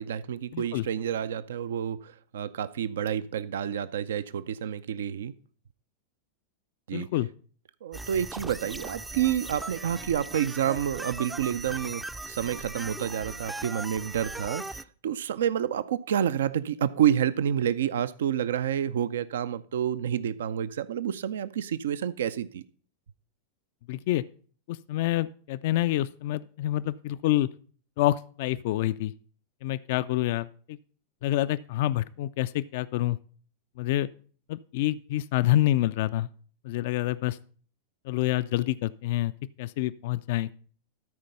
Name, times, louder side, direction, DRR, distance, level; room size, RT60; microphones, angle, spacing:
voice 1, 0.0-5.3 6.9-7.1 7.8-22.6, right 9 dB, 75° right, 0.4 m, -29 dB
voice 2, 0.5-0.9 6.9-7.3 23.9-24.2 24.7-27.5 28.0-29.1 29.6-30.8 31.2-33.2 33.8-34.1 34.5-36.3 36.6-37.4 38.1-39.3 39.6-40.5, left 15 dB, 60° left, 0.3 m, -27 dB
sound 1, 7.9-14.8, right 2 dB, 10° right, 0.4 m, -39 dB
13.0 x 4.5 x 5.4 m
hypercardioid pair, 95°, 0 cm